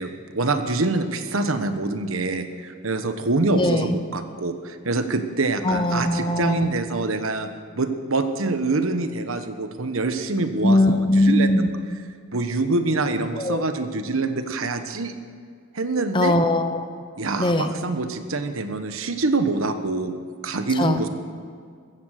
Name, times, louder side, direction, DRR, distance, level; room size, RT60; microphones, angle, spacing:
voice 1, 0.0-7.5 7.7-11.6 12.3-15.2 15.7-16.4 17.2-20.1 20.4-21.1, right 3 dB, 75° right, 9 dB, 1.2 m, -25 dB
voice 2, 3.5-3.9 5.6-6.8 10.6-11.7 13.4-13.6 16.1-17.0 17.4-17.7 20.8-21.1, left 1 dB, 25° left, 8 dB, 0.9 m, -20 dB
15.5 x 14.0 x 6.7 m, 2.1 s
head